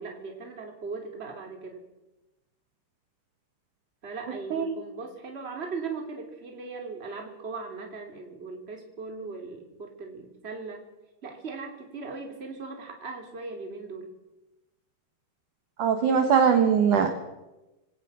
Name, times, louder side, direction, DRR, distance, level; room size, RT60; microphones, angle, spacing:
voice 1, 0.0-1.8 4.0-10.8 11.2-14.1, right 4 dB, 15° right, 2 dB, 2.5 m, -38 dB
voice 2, 15.8-17.2, right 7 dB, 60° right, 6 dB, 2.2 m, -21 dB
25.0 x 17.5 x 6.3 m, 1.0 s
omnidirectional pair, 5.4 m